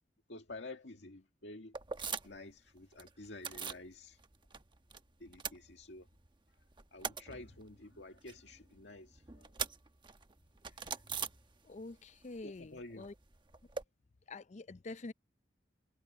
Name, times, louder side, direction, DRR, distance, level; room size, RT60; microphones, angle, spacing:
voice 1, 0.3-1.7 2.2-4.2 5.2-6.1 6.9-9.5 12.4-13.1, left 2 dB, 75° left, 2.0 m, -50 dB
sound 1, 1.7-2.5 2.8-3.9 4.2-5.0 5.2-6.3 6.6-12.0 12.2-13.8, right 6 dB, 25° right, 1.0 m, -43 dB
voice 2, 11.6-13.1 14.3-15.1, left 3 dB, 40° left, 0.5 m, -46 dB
head